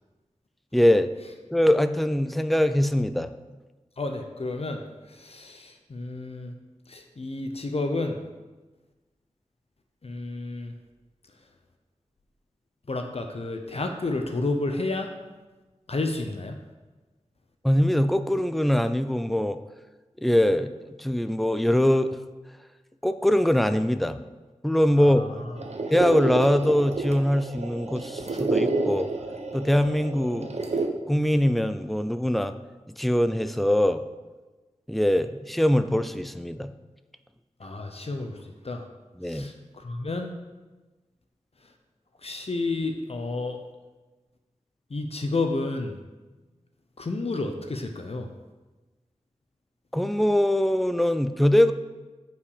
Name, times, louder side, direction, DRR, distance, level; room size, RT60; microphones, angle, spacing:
voice 1, 0.7-1.1 1.5-3.3 17.6-19.6 20.2-20.7 21.0-22.2 23.0-24.2 24.6-25.2 25.9-29.1 29.5-30.5 31.1-32.5 33.0-34.0 34.9-36.7 39.2-39.5 49.9-51.7, left 1 dB, ahead, 11 dB, 0.5 m, -22 dB
voice 2, 4.0-4.8 5.1-6.5 6.9-8.2 10.0-10.7 12.9-15.1 15.9-16.6 25.0-25.5 37.6-38.8 39.2-40.3 42.2-43.6 44.9-46.0 47.0-48.3, left 2 dB, 55° left, 4 dB, 0.8 m, -31 dB
sound 1, 25.6-30.9, right 3 dB, 65° right, 0.9 m, -29 dB
9.3 x 5.7 x 4.9 m, 1.2 s
wide cardioid pair, 75°, 12 cm